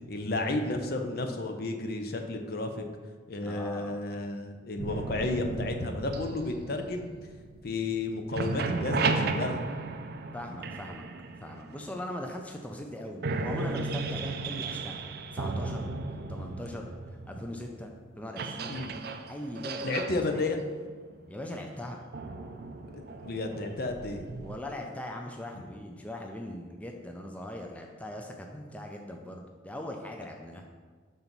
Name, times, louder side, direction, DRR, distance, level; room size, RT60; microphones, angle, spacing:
voice 1, 0.1-2.8 3.3-7.1 7.6-9.6 18.7-19.0 19.8-20.6 22.9-24.3, left 2 dB, 55° left, 5 dB, 0.6 m, -32 dB
voice 2, 3.4-4.0 10.3-11.0 11.4-15.9 16.3-18.7 19.3-19.9 20.3-20.4 21.3-22.0 24.4-30.7, left 1 dB, 10° left, 2 dB, 0.4 m, -40 dB
sound 1, 4.8-8.0 8.2-12.2 12.8-12.9 13.2-24.6, right 3 dB, 55° right, 0.4 m, -35 dB
5.5 x 3.9 x 6.0 m, 1.5 s
head